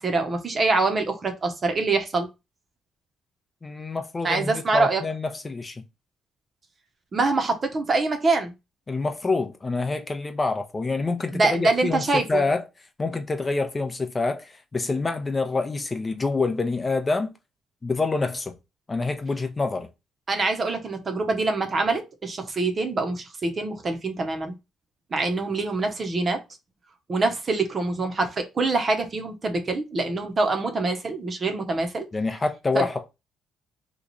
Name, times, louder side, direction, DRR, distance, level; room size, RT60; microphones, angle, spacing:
voice 1, 0.0-2.3 4.2-5.0 7.1-8.5 11.3-12.4 20.3-24.5 25.1-26.4 27.1-32.0 32.7-32.9, right 3 dB, 40° right, 0.8 m, -25 dB
voice 2, 3.6-5.8 8.9-12.7 13.0-17.3 17.8-18.5 18.9-19.9 32.1-33.1, left 3 dB, 25° left, 0.6 m, -26 dB
3.0 x 2.4 x 3.8 m
cardioid pair, 90°, 0 cm